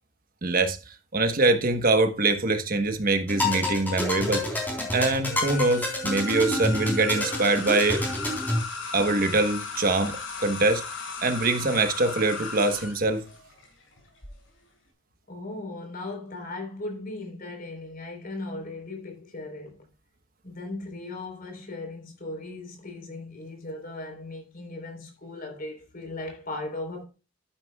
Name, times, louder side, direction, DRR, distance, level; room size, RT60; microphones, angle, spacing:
voice 1, 0.4-0.8 1.1-4.5 4.9-8.0 8.9-10.8 11.2-13.2, right 2 dB, 45° right, 1.2 m, -24 dB
sound 1, 3.3-8.6, left 1 dB, 10° left, 3.8 m, -28 dB
sound 2, 5.3-14.3, left 5 dB, 80° left, 5.2 m, -36 dB
voice 2, 15.3-19.8 20.4-27.1, left 2 dB, 50° left, 3.9 m, -37 dB
11.5 x 10.0 x 2.3 m
head